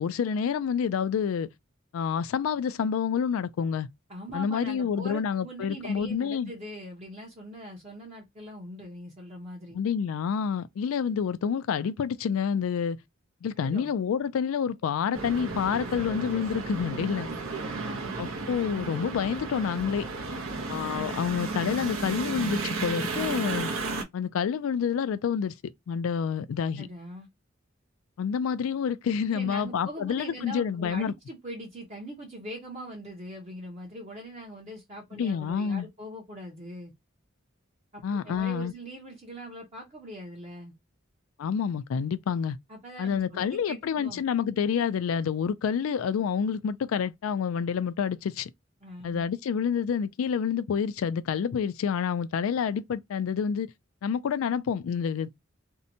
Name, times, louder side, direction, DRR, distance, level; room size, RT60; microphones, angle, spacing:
voice 1, 0.0-1.5 1.9-3.9 4.3-6.5 9.7-13.0 13.4-17.3 18.2-20.1 20.7-23.7 24.1-25.6 25.9-26.9 28.2-31.1 35.2-35.9 38.0-38.7 41.4-42.6 43.0-48.5 49.0-53.7 54.0-55.3, left 7 dB, 85° left, 0.3 m, -28 dB
voice 2, 4.1-9.8 13.6-13.9 17.6-18.2 26.7-27.3 29.3-36.9 37.9-40.7 42.7-44.2 48.8-49.2, equal, 30° right, 0.7 m, -42 dB
sound 1, 15.1-24.0, right 3 dB, 85° right, 0.7 m, -33 dB
2.7 x 2.1 x 2.6 m
head